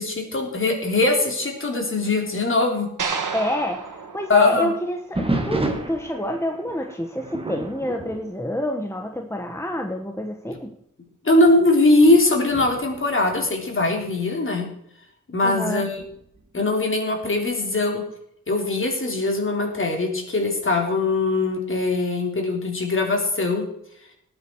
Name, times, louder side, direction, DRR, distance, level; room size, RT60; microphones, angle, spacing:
voice 1, 0.0-2.9 4.3-4.7 11.2-14.7 15.3-16.0 16.5-18.0 18.5-23.7, left 2 dB, 40° left, 2 dB, 3.5 m, -21 dB
sound 1, 3.0-5.3, right 5 dB, 80° right, 2.3 m, -31 dB
voice 2, 3.3-3.8 4.1-10.7 15.4-15.8, equal, 10° left, 4 dB, 1.2 m, -28 dB
sound 2, 5.1-9.3 9.6-10.0 10.6-10.7 11.4-14.1 16.0-16.5, right 2 dB, 20° right, 2.0 m, -31 dB
19.0 x 8.9 x 4.6 m, 0.73 s
wide cardioid pair, 135°, 31 cm